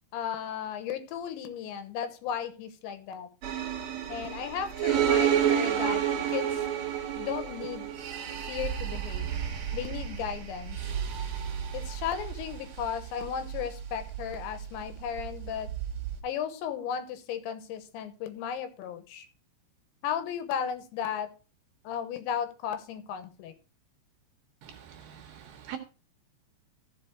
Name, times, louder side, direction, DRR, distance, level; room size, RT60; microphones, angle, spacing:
voice 1, 0.1-3.3 4.1-6.0 6.3-6.7 7.2-7.9 8.4-9.3 9.7-10.8 11.7-15.7 16.2-19.3 20.0-21.3 21.8-23.5, left 8 dB, 85° left, 10 dB, 3.3 m, -35 dB
sound 1, 3.4-16.2, right 9 dB, 55° right, 2.0 m, -31 dB
voice 2, 24.6-25.8, right 9 dB, 75° right, 4 dB, 2.3 m, -44 dB
15.0 x 5.3 x 4.6 m, 0.34 s
omnidirectional pair, 5.2 m